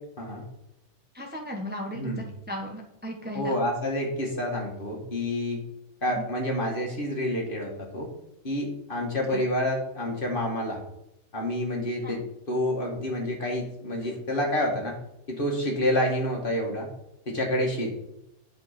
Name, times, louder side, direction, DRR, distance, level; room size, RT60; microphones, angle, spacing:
voice 1, 1.1-3.6 6.1-6.2 9.3-9.4 12.0-12.2, equal, 10° right, 1 dB, 1.1 m, -36 dB
voice 2, 3.3-5.6 6.0-8.1 8.4-10.8 11.3-15.0 15.3-16.9 17.3-17.9, left 1 dB, 50° left, -1 dB, 2.3 m, -28 dB
10.5 x 5.4 x 5.2 m, 0.84 s
omnidirectional pair, 1.2 m